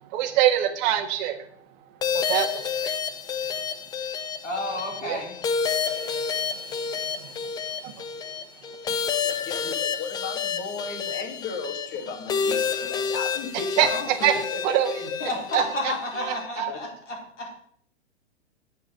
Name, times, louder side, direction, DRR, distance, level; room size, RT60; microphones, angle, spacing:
voice 1, 0.0-3.8 5.0-5.3 5.6-8.0 8.9-9.0 13.5-14.4 14.6-14.9 15.5-16.7, right 11 dB, 40° right, 6 dB, 1.5 m, -27 dB
sound 1, 2.0-16.5, left 6 dB, 10° left, 0.5 m, -29 dB
voice 2, 4.4-5.4 15.2-17.5, left 1 dB, 85° left, -2 dB, 4.4 m, -31 dB
voice 3, 9.2-14.1 14.5-14.9 16.7-16.8, left 4 dB, 30° left, 4 dB, 2.3 m, -35 dB
8.7 x 7.6 x 6.4 m, 0.62 s
figure-of-eight pair, 110°, 36 cm